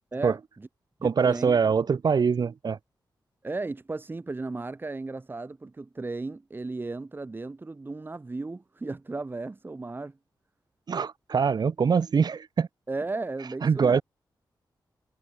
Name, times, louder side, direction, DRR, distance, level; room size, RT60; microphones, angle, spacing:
voice 1, 0.1-0.7 1.0-1.7 3.4-10.2 12.9-14.0, right 3 dB, 25° right, 1.7 m, -35 dB
voice 2, 1.0-2.8 10.9-12.7 13.6-14.0, right 6 dB, 55° right, 2.2 m, -23 dB
wide cardioid pair, 105°, 8 cm